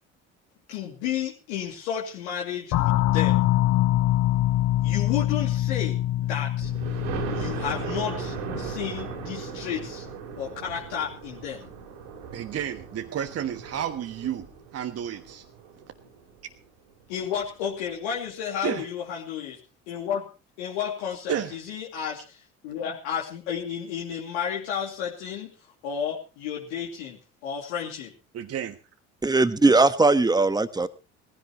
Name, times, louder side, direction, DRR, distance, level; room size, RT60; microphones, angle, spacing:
voice 1, 0.7-3.5 4.8-6.7 7.3-10.0 10.4-11.7 17.1-19.6 19.9-20.3 20.6-25.5 25.8-28.1, left 8 dB, 70° left, -3 dB, 2.8 m, -32 dB
sound 1, 2.7-9.0, left 14 dB, 55° left, 0.8 m, -24 dB
Thunder, 6.6-16.3 16.9-17.0 17.4-17.5 17.8-17.9, right 6 dB, 75° right, 4.0 m, -37 dB
voice 2, 12.3-14.5 14.7-15.4 18.6-18.9 21.3-21.6 28.3-28.8, right 10 dB, 45° right, 7 dB, 1.4 m, -31 dB
voice 3, 29.2-30.9, right 3 dB, 10° right, 13 dB, 1.3 m, -19 dB
19.5 x 16.0 x 3.1 m, 0.32 s
hypercardioid pair, 60°, 35 cm